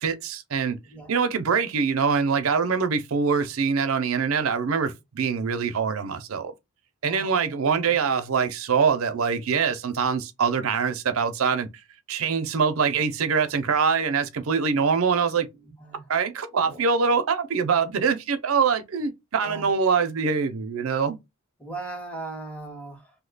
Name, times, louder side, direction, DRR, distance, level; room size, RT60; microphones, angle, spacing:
voice 1, 0.0-0.8 1.1-6.5 7.0-11.7 12.1-15.5 16.1-21.2, right 5 dB, 70° right, 0.5 m, -24 dB
voice 2, 7.0-7.9 15.8-16.0 16.5-16.8 19.4-19.7 21.6-23.0, right 3 dB, 5° left, 0.9 m, -38 dB
2.7 x 2.1 x 3.8 m
head